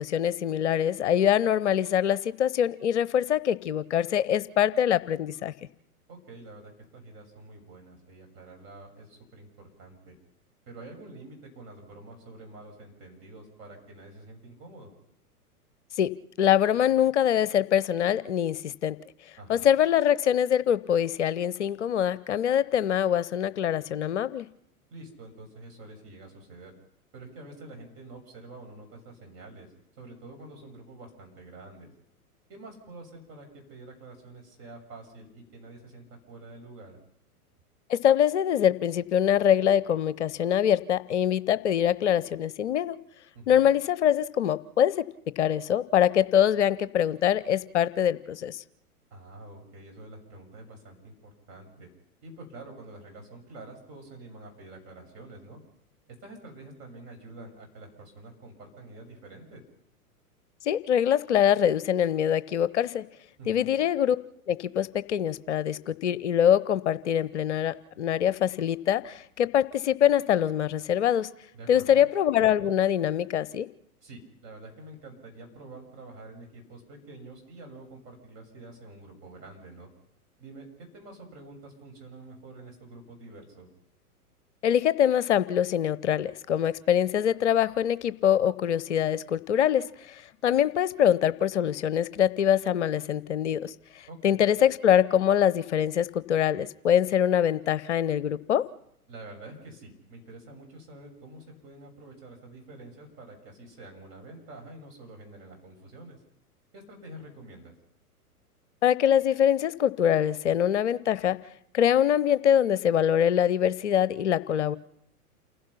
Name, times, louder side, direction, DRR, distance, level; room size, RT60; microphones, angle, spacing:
voice 1, 0.0-5.5 16.0-16.1 16.4-19.0 19.5-24.5 37.9-43.0 43.5-45.0 45.4-48.6 60.6-63.0 63.5-64.2 64.5-71.3 71.7-73.7 84.6-98.7 108.8-111.4 111.7-114.8, left 10 dB, 50° left, 17 dB, 0.9 m, -24 dB
voice 2, 6.1-10.1 10.7-14.9 19.4-19.7 24.9-26.7 27.1-31.9 32.5-37.0 43.3-43.7 49.1-51.9 52.2-55.6 56.1-59.6 63.4-63.7 71.5-72.0 74.0-79.9 80.4-83.7 94.1-94.4 99.1-106.2 106.7-107.7, right 2 dB, 30° right, 2 dB, 7.0 m, -47 dB
29.0 x 16.0 x 5.8 m, 0.75 s
figure-of-eight pair, 105°, 45 cm